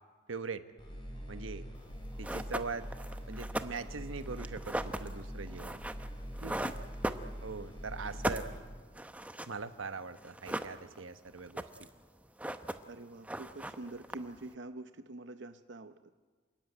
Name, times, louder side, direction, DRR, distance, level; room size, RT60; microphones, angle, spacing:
voice 1, 0.3-0.6 1.3-1.6 2.2-2.9 3.3-5.8 7.4-8.5 9.5-11.6, right 4 dB, 90° right, 11 dB, 1.1 m, -41 dB
sound 1, 0.8-8.6, equal, 25° left, 5.7 m, -44 dB
sound 2, 1.8-1.9 2.2-7.7 8.0-9.6 9.9-10.0 10.2-11.1 11.4-12.0 12.2-13.0 13.2-14.5, right 1 dB, 5° right, 0.8 m, -38 dB
voice 2, 6.4-6.7 8.1-8.2 12.9-15.9, right 2 dB, 65° right, 9 dB, 0.8 m, -46 dB
27.5 x 16.0 x 9.9 m, 1.5 s
head